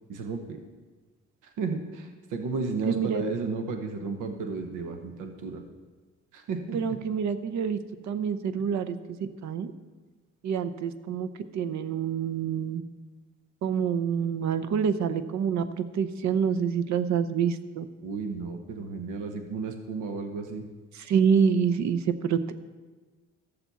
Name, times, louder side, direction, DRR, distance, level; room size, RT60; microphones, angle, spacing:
voice 1, 0.1-0.6 1.4-5.6 6.3-6.8 18.0-20.7, right 4 dB, 90° right, 5 dB, 1.0 m, -33 dB
voice 2, 2.9-3.2 6.7-7.8 8.0-9.0 9.4-9.7 10.4-12.8 13.6-17.9 21.1-22.5, right 7 dB, 65° right, 11 dB, 0.8 m, -27 dB
13.5 x 6.9 x 4.1 m, 1.3 s
cardioid pair, 90°, 30 cm